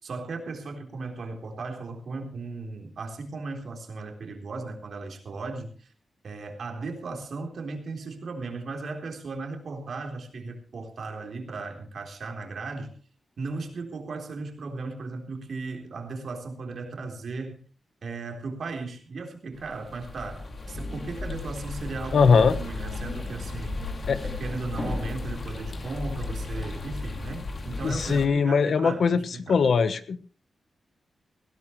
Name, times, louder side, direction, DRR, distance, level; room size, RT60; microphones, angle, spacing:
voice 1, 0.0-5.9 6.2-13.0 13.4-17.6 18.0-23.8 24.2-29.6, right 3 dB, 65° right, 3 dB, 3.8 m, -36 dB
sound 1, 19.5-28.3, left 3 dB, 45° left, 2.7 m, -35 dB
voice 2, 22.1-22.6 24.1-24.2 27.8-29.2 29.5-30.2, left 5 dB, 70° left, 12 dB, 1.2 m, -21 dB
20.0 x 16.5 x 3.3 m, 0.39 s
wide cardioid pair, 130°, 0 cm